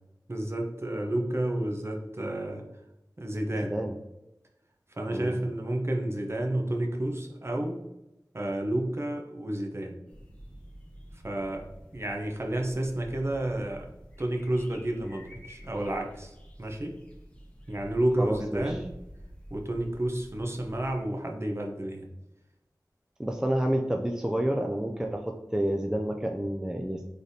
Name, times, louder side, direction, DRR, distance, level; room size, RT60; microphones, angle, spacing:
voice 1, 0.3-2.6 3.2-3.7 5.0-7.8 8.3-9.9 11.2-11.6 11.9-13.9 14.2-17.0 17.7-18.9 19.5-22.1, right 1 dB, 35° right, 1 dB, 0.7 m, -30 dB
sound 1, 10.1-21.0, equal, 15° left, 0.9 m, -49 dB
voice 2, 18.2-18.8 23.2-27.0, right 1 dB, 10° right, 3 dB, 0.3 m, -29 dB
3.9 x 3.3 x 2.7 m, 0.90 s
wide cardioid pair, 60°, 7 cm